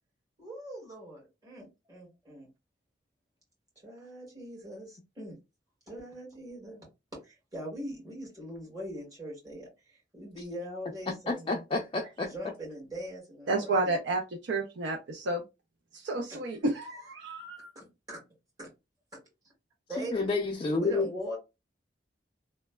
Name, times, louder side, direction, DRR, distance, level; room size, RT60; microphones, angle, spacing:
voice 1, 0.4-2.5 3.8-5.4 5.9-6.9 7.2-11.5 12.3-14.0 16.3-16.4 17.8-18.2 18.6-18.7 19.9-20.3 20.8-21.4, equal, 20° right, 1.7 m, -41 dB
voice 2, 11.3-12.3 20.0-21.1, left 3 dB, 30° left, 0.3 m, -29 dB
voice 3, 13.5-15.4 15.9-17.7, right 2 dB, 70° right, 0.5 m, -31 dB
3.1 x 2.1 x 2.2 m
head